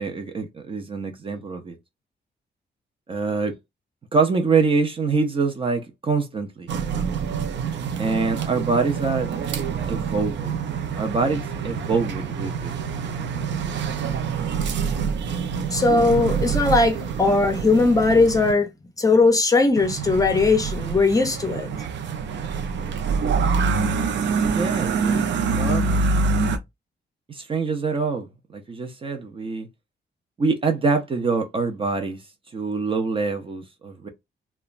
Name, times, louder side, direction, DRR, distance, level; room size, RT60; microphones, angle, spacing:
voice 1, 0.0-1.8 3.1-3.5 4.1-6.7 8.0-9.3 9.9-10.5 11.0-12.7 24.4-25.9 27.3-28.3 28.5-29.7 30.4-32.2 32.5-34.1, right 4 dB, 30° right, 0.4 m, -25 dB
sound 1, 6.7-18.5 19.8-26.6, right 5 dB, 85° right, 0.5 m, -26 dB
voice 2, 15.7-18.7 19.0-21.7, left 3 dB, 20° left, 0.5 m, -19 dB
2.9 x 2.2 x 2.3 m
wide cardioid pair, 170°, 18 cm